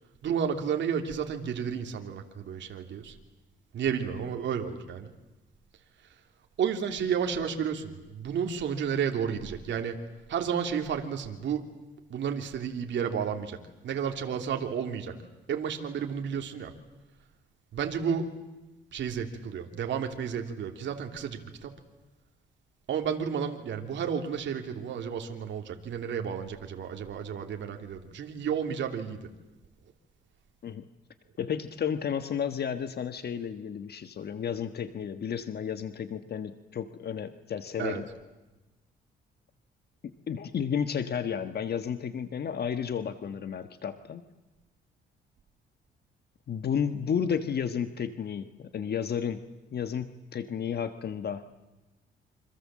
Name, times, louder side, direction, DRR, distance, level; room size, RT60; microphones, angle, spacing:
voice 1, 0.2-3.1 3.7-5.1 6.6-10.0 10.3-11.7 12.1-15.2 15.5-16.7 17.7-18.3 18.9-21.7 22.9-29.3 37.8-38.0, right 7 dB, 65° right, 4 dB, 3.0 m, -32 dB
voice 2, 31.4-38.0 40.3-44.2 46.5-49.4 49.7-51.4, left 7 dB, 55° left, 9 dB, 1.4 m, -32 dB
27.5 x 26.0 x 7.6 m, 1.1 s
cardioid pair, 90°, 20 cm